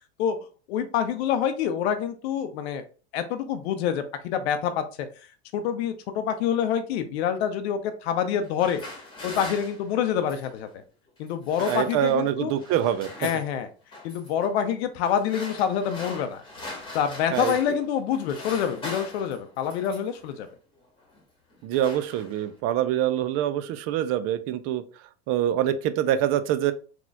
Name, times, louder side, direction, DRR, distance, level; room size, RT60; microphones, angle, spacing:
voice 1, 0.7-2.8 3.1-4.8 5.5-8.8 9.2-10.8 11.2-12.5 13.2-13.7 14.0-16.4 16.9-20.5, left 8 dB, 70° left, 8 dB, 0.6 m, -26 dB
sound 1, 8.4-10.6 11.3-12.3 12.6-13.5 13.9-14.3 15.0-17.8 18.1-20.2 21.0-21.2 21.5-22.6, left 2 dB, 15° left, 1.3 m, -41 dB
voice 2, 11.7-13.1 17.3-17.5 21.6-24.8 25.3-26.7, right 11 dB, 45° right, 13 dB, 0.4 m, -25 dB
3.9 x 2.9 x 2.3 m, 0.37 s
hypercardioid pair, 110°, 34 cm